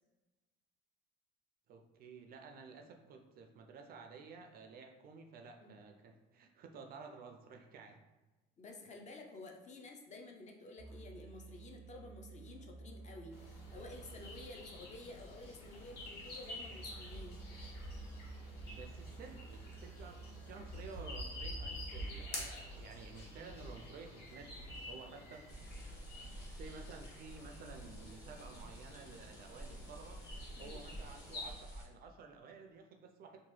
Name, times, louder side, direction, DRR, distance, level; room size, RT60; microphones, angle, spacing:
voice 1, 1.7-8.0 18.7-25.5 26.3-30.2 30.6-33.4, right 4 dB, 45° right, 5 dB, 0.4 m, -53 dB
voice 2, 8.6-17.4 30.6-30.8, left 2 dB, 35° left, 2 dB, 0.5 m, -52 dB
sound 1, 10.8-15.7 16.6-22.6, right 5 dB, 85° right, 0.6 m, -53 dB
sound 2, 13.3-31.5, left 1 dB, 50° left, 0.9 m, -48 dB
sound 3, 25.5-31.9, right 1 dB, 15° left, 0.9 m, -50 dB
2.9 x 2.1 x 3.1 m, 1.1 s
supercardioid pair, 85°, 21 cm